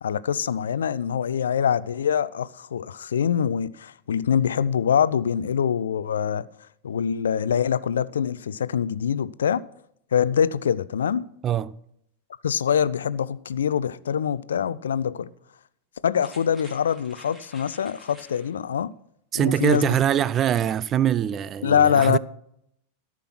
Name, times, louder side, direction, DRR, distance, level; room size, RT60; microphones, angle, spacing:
voice 1, 0.0-6.5 6.8-9.6 10.1-11.2 12.4-15.3 16.0-18.9 19.3-19.9 21.6-22.2, left 8 dB, 65° left, 0.4 m, -24 dB
sound 1, 16.2-18.5 19.5-19.9 20.3-20.4, left 1 dB, 5° right, 2.7 m, -49 dB
voice 2, 19.3-22.2, right 10 dB, 30° right, 0.4 m, -23 dB
13.5 x 6.1 x 6.0 m
figure-of-eight pair, 90°, 0 cm